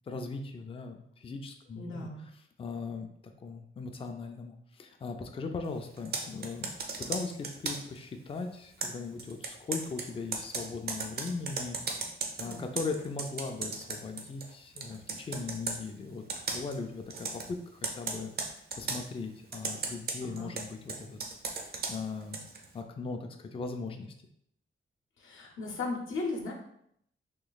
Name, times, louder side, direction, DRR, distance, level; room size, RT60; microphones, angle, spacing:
voice 1, 0.1-2.1 2.6-6.7 7.0-11.8 12.4-18.3 18.8-21.2 21.5-22.4 22.7-24.1, left 4 dB, 25° left, 5 dB, 0.4 m, -39 dB
voice 2, 1.7-2.3 12.4-12.6 20.2-20.5 25.2-26.5, left 3 dB, 70° left, -1 dB, 0.7 m, -36 dB
Computer keyboard, 6.0-8.0 8.8-14.5 14.8-15.8 16.3-16.8 17.1-17.5 17.8-19.0 19.5-22.7, right 4 dB, 50° right, 0.5 m, -36 dB
3.0 x 3.0 x 3.9 m, 0.72 s
wide cardioid pair, 165°, 21 cm